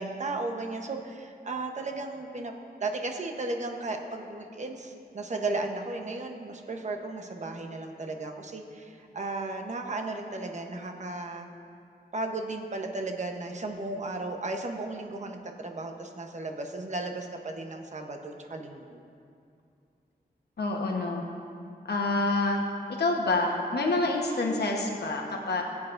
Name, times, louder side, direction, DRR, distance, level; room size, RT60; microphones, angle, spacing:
voice 1, 0.0-2.5 2.8-11.5 12.1-19.0, right 2 dB, 45° right, 3 dB, 1.0 m, -35 dB
voice 2, 20.6-21.2 21.8-22.6 23.0-25.6, left 2 dB, 75° left, 1 dB, 1.1 m, -27 dB
20.0 x 8.5 x 2.6 m, 2.4 s
wide cardioid pair, 140°, 17 cm